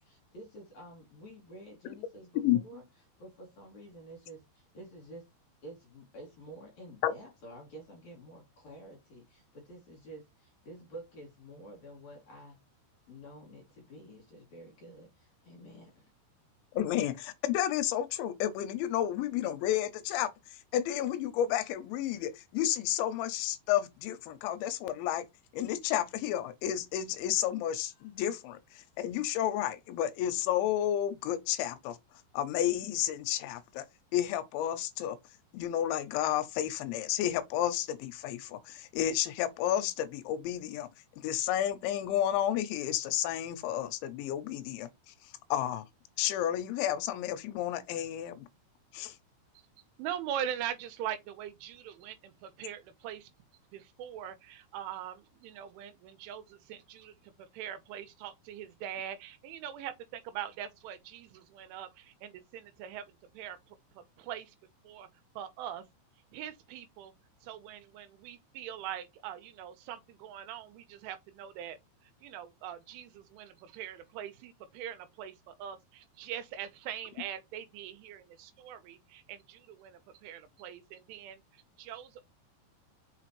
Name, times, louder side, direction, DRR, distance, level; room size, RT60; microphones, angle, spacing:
voice 1, 0.0-2.8 3.2-5.3 5.6-12.6 13.1-16.1, right 1 dB, 50° left, 2.5 m, -50 dB
voice 2, 16.7-20.3 20.7-25.2 25.5-28.6 29.0-32.0 32.3-33.9 34.1-35.2 35.5-40.9 41.2-44.9 45.5-45.8 46.2-48.5 48.9-49.2, left 11 dB, 80° left, 2.9 m, -31 dB
voice 3, 50.0-53.3 53.7-64.6 64.8-65.1 65.4-65.8 66.3-67.1 67.4-82.2, right 10 dB, 85° right, 3.3 m, -42 dB
6.3 x 4.9 x 3.0 m
omnidirectional pair, 5.6 m